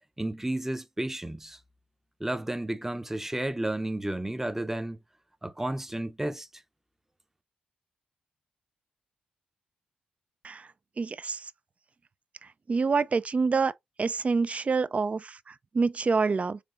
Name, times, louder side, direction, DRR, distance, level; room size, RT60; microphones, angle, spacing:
voice 1, 0.2-1.6 2.2-5.0 5.4-6.5, right 1 dB, 10° right, 0.7 m, -32 dB
voice 2, 11.0-11.4 12.7-13.7 14.0-16.6, right 4 dB, 40° right, 0.5 m, -27 dB
5.0 x 3.6 x 2.5 m
supercardioid pair, 50°, 3 cm